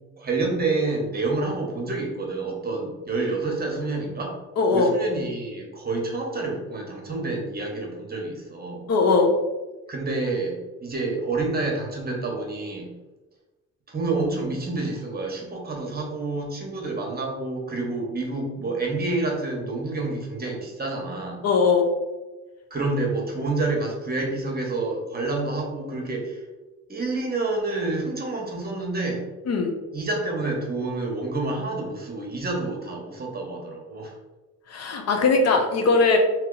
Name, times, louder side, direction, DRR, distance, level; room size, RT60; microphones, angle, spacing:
voice 1, 0.2-4.4 4.7-8.9 9.9-12.9 13.9-21.4 22.7-26.4 26.9-29.3 29.9-34.1, right 3 dB, 30° right, 0 dB, 1.0 m, -28 dB
voice 2, 4.6-4.9 8.9-9.4 21.4-21.9 29.5-29.7 34.7-36.2, left 4 dB, 55° left, 4 dB, 0.7 m, -20 dB
2.9 x 2.8 x 3.8 m, 1.1 s
cardioid pair, 90°, 30 cm